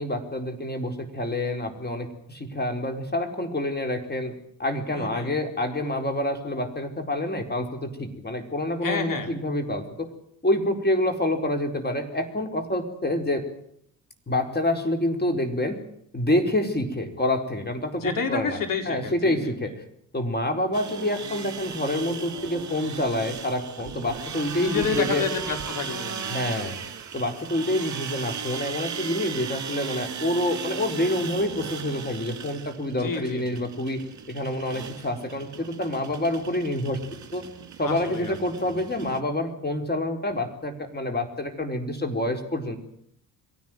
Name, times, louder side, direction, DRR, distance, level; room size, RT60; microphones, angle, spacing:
voice 1, 0.0-4.3 4.6-10.1 10.4-13.4 14.3-15.8 16.1-19.7 20.1-25.2 26.3-26.8 27.1-34.0 34.3-37.0 37.3-37.4 37.8-42.8, left 1 dB, 20° left, 5 dB, 4.5 m, -27 dB
voice 2, 4.9-5.3 8.8-9.3 18.0-19.5 24.6-26.8 32.9-33.6 37.8-38.4, left 5 dB, 40° left, 5 dB, 4.7 m, -30 dB
sound 1, 20.7-39.2, right 7 dB, 35° right, 2.9 m, -37 dB
23.0 x 17.0 x 9.3 m, 0.70 s
figure-of-eight pair, 50°, 50 cm